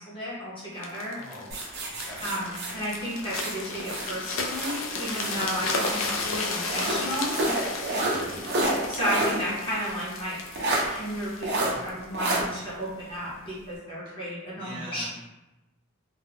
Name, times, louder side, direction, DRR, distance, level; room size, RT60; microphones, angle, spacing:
voice 1, 0.0-1.2 2.2-7.3 8.9-10.4 10.9-15.1, equal, 25° left, -8 dB, 0.8 m, -33 dB
sound 1, 0.8-12.7 13.3-13.5, left 3 dB, 65° left, 0.4 m, -34 dB
voice 2, 1.1-1.6 1.8-2.3 8.1-8.4 11.6-11.8 14.0-14.1 14.6-15.1, equal, 20° right, -8 dB, 0.9 m, -43 dB
sound 2, 1.5-4.1 4.5-6.0 6.7-9.4 9.7-9.8 10.6-10.8 11.4-11.7 12.1-12.4, right 2 dB, 55° right, 0.6 m, -29 dB
2.3 x 2.1 x 3.3 m, 1.0 s
head